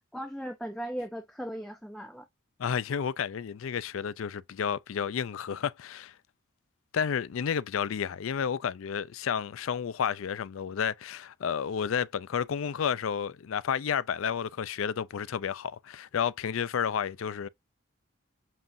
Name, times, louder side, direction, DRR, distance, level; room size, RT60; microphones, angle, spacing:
voice 1, 0.1-2.3, equal, ahead, 0.4 m, -37 dB
voice 2, 2.6-6.1 6.9-17.5, left 7 dB, 80° left, 0.4 m, -31 dB
7.5 x 2.6 x 2.6 m
head